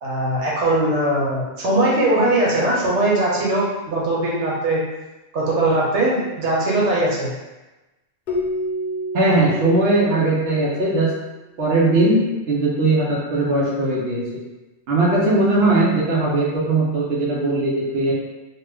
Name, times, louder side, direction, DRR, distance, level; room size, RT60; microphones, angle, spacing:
voice 1, 0.0-4.8 5.3-7.3, right 1 dB, 90° right, -5 dB, 1.1 m, -20 dB
Keyboard (musical), 8.3-11.1, equal, 55° left, 0.7 m, -29 dB
voice 2, 9.1-11.1 11.6-14.4 14.9-18.1, right 2 dB, 65° right, -4 dB, 0.9 m, -19 dB
2.9 x 2.2 x 3.3 m, 1.1 s
omnidirectional pair, 1.2 m